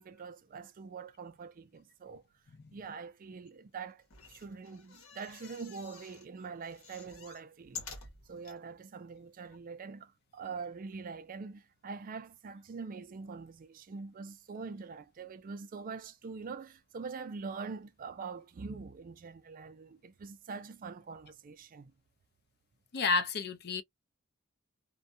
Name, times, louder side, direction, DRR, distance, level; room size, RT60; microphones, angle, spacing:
voice 1, 0.0-2.2 2.7-4.0 4.3-7.8 8.3-21.9, right 4 dB, 40° right, 0.4 m, -44 dB
sound 1, 4.0-6.3 6.6-8.6 9.2-9.3 9.4-9.5, left 6 dB, 75° left, 1.1 m, -49 dB
voice 2, 22.9-23.8, left 4 dB, 50° left, 0.5 m, -30 dB
2.6 x 2.2 x 2.5 m
head